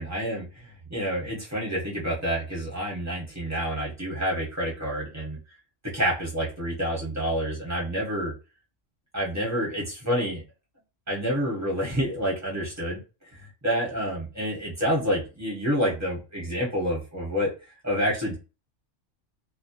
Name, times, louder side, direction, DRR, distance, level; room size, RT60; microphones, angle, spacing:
voice 1, 0.0-5.4 5.9-8.3 9.1-10.4 11.1-13.0 13.3-17.5 17.8-18.4, equal, 15° right, -5 dB, 0.9 m, -28 dB
2.2 x 2.1 x 2.8 m, 0.31 s
omnidirectional pair, 1.3 m